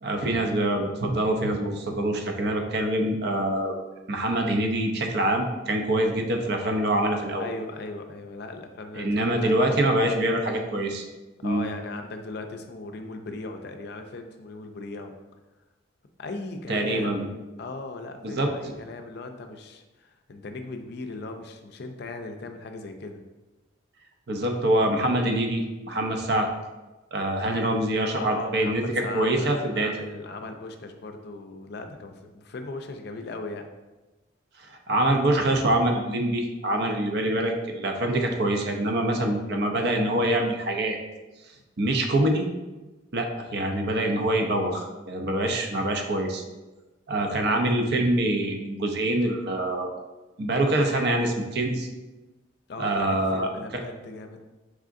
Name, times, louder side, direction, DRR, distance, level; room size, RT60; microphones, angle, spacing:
voice 1, 0.0-3.7 4.1-7.5 9.0-11.0 11.4-11.6 16.7-17.3 18.2-18.5 24.3-26.5 27.1-29.9 34.9-41.0 41.8-42.5 43.1-46.4 47.1-49.9 50.4-51.9 52.8-53.8, right 1 dB, 55° right, 3 dB, 0.6 m, -25 dB
voice 2, 7.4-10.2 11.4-15.1 16.2-17.3 17.6-23.2 28.2-33.7 41.6-41.7 47.2-47.6 52.7-54.4, left 3 dB, 55° left, 5 dB, 0.4 m, -38 dB
4.8 x 3.6 x 2.5 m, 1.1 s
head